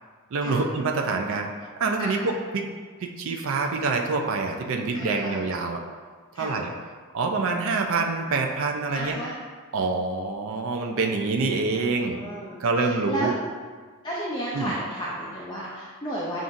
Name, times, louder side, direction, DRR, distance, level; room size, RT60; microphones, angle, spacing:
voice 1, 0.3-2.7 3.0-5.8 6.4-6.7 7.1-9.2 9.7-12.2 12.6-13.3 14.5-14.7, right 3 dB, 60° right, 3 dB, 0.4 m, -26 dB
voice 2, 4.9-5.4 6.3-6.6 8.9-9.4 11.4-13.3 14.0-16.4, right 1 dB, 20° left, -6 dB, 0.5 m, -33 dB
7.0 x 2.5 x 2.5 m, 1.5 s
head